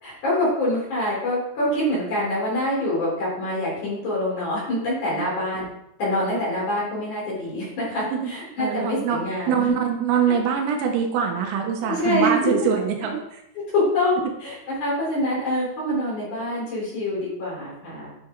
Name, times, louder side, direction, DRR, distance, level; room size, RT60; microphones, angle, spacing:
voice 1, 0.0-5.7 6.0-9.8 11.8-12.3 12.6-12.7 13.0-13.1 13.7-18.1, left 1 dB, 40° left, -6 dB, 4.7 m, -25 dB
voice 2, 8.0-8.3 8.6-9.2 9.5-13.4, right 7 dB, 85° right, 2 dB, 4.0 m, -24 dB
10.5 x 6.0 x 4.8 m, 0.81 s
omnidirectional pair, 5.9 m